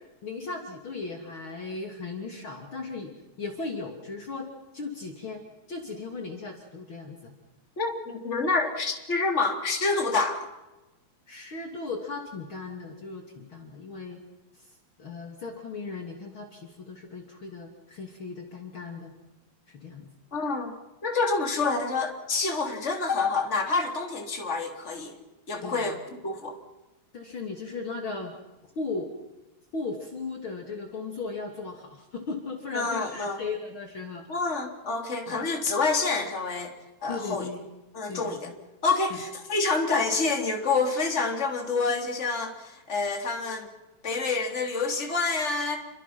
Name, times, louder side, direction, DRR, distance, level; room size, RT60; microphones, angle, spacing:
voice 1, 0.2-3.1 3.4-5.4 5.7-7.3 11.3-14.2 14.5-14.7 15.0-19.1 19.7-20.1 25.6-26.0 27.1-28.3 28.7-29.1 29.7-34.3 35.3-35.4 37.1-37.7 38.1-38.4 39.1-39.2, left 4 dB, 45° left, 2 dB, 3.3 m, -37 dB
voice 2, 7.8-10.5 20.3-20.7 21.0-25.1 25.5-26.6 32.7-33.4 34.3-36.7 37.0-37.5 37.9-38.5 38.8-43.7 44.0-45.8, left 3 dB, 25° left, 3 dB, 3.6 m, -27 dB
29.5 x 24.5 x 6.0 m, 1.0 s
omnidirectional pair, 3.3 m